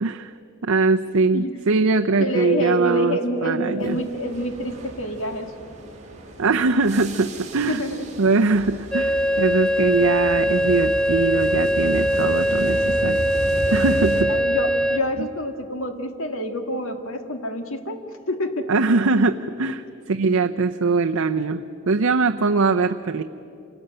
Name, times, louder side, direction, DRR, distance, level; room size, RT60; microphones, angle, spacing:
voice 1, 0.0-0.3 0.6-4.0 6.4-7.8 8.2-13.2 13.7-14.3 18.7-23.2, right 3 dB, 80° right, 5 dB, 0.7 m, -21 dB
voice 2, 2.2-5.5 7.7-8.5 14.0-18.0 18.3-18.7, left 1 dB, 70° left, 7 dB, 1.9 m, -27 dB
sound 1, 3.8-14.2, right 1 dB, 35° right, 3.4 m, -34 dB
sound 2, 8.9-15.0, equal, 5° left, 0.5 m, -21 dB
27.0 x 19.0 x 8.8 m, 2.7 s
head